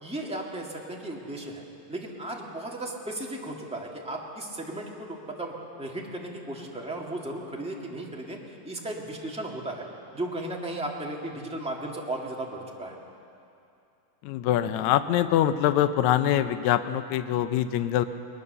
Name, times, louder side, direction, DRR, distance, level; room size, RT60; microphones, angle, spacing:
voice 1, 0.0-5.5 5.8-8.4 8.6-9.8 10.1-13.0, right 1 dB, 5° right, -2 dB, 1.0 m, -35 dB
voice 2, 14.3-18.1, left 11 dB, 90° left, 10 dB, 1.6 m, -24 dB
21.0 x 21.0 x 6.8 m, 2.7 s
omnidirectional pair, 4.1 m